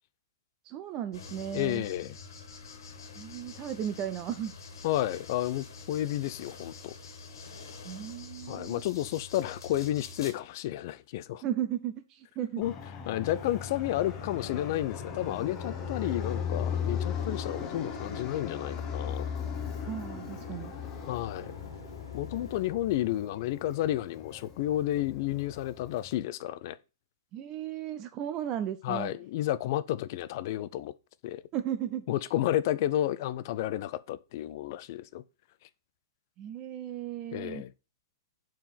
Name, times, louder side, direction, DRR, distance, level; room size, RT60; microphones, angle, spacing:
voice 1, 0.6-1.8 3.2-4.5 7.8-8.8 11.4-12.6 19.8-20.7 27.3-29.1 31.5-32.1 36.4-37.6, right 10 dB, 30° right, 0.5 m, -35 dB
sound 1, 1.1-10.3, left 4 dB, 70° left, 1.6 m, -46 dB
voice 2, 1.5-2.2 4.8-6.9 8.5-11.4 12.6-12.7 13.1-19.3 21.1-21.5 22.1-26.8 28.8-30.9 31.2-31.4 32.1-35.2 37.3-37.7, left 13 dB, 50° left, 0.4 m, -31 dB
Fixed-wing aircraft airplane, 12.6-26.1, left 7 dB, 25° left, 1.1 m, -37 dB
sound 2, 13.3-22.7, left 5 dB, 90° left, 1.4 m, -46 dB
5.4 x 4.4 x 5.7 m
hypercardioid pair, 120°, 2 cm